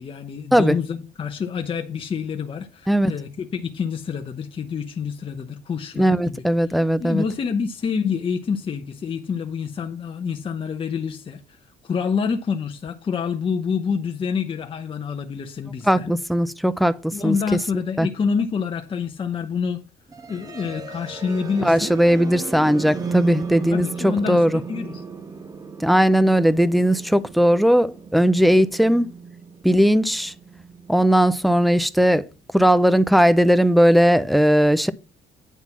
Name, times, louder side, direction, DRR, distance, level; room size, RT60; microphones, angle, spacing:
voice 1, 0.0-6.4 7.0-16.1 17.1-19.8 20.3-21.9 23.7-25.0, left 6 dB, 30° left, 0.8 m, -27 dB
voice 2, 6.0-7.2 15.9-17.4 18.0-18.1 21.6-24.6 25.8-29.1 29.6-30.3 30.9-32.3 32.5-34.9, equal, ahead, 0.5 m, -18 dB
sound 1, 20.1-32.0, right 5 dB, 20° right, 1.2 m, -35 dB
9.2 x 4.0 x 7.1 m
cardioid pair, 110°, 17 cm